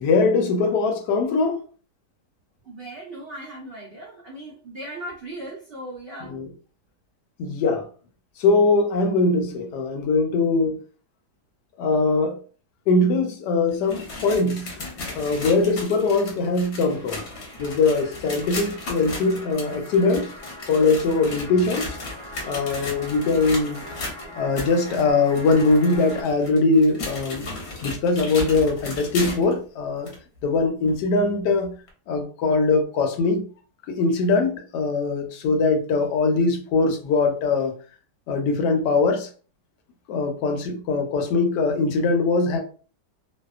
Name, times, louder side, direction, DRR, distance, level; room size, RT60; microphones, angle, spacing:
voice 1, 0.0-1.6 6.2-6.5 7.4-7.9 8.4-10.8 11.8-12.4 12.9-14.7 15.1-17.2 17.6-20.3 20.7-21.9 22.5-23.8 24.3-27.4 27.8-30.1 30.4-31.7 32.1-33.5 33.9-37.7 38.3-39.3 40.1-42.6, left 3 dB, 80° left, 1.2 m, -21 dB
voice 2, 2.6-6.3, right 1 dB, 75° right, 0.5 m, -38 dB
sound 1, 13.7-29.6 30.1-30.2 30.9-31.0 31.9-32.0, left 2 dB, 55° left, 0.8 m, -36 dB
sound 2, 16.8-26.2, equal, 5° left, 0.6 m, -42 dB
2.7 x 2.1 x 2.3 m
omnidirectional pair, 1.8 m